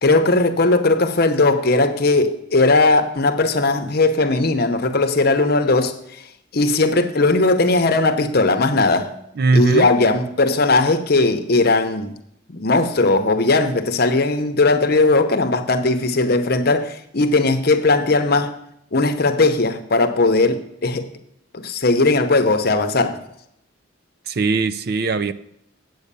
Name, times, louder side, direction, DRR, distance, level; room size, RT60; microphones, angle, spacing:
voice 1, 0.0-6.2 6.5-9.1 9.5-12.1 12.5-18.5 18.9-21.1 21.5-23.2, left 3 dB, 50° left, 0.8 m, -18 dB
voice 2, 9.4-9.9 24.3-25.3, right 3 dB, 50° right, 0.5 m, -19 dB
8.5 x 8.0 x 6.8 m
head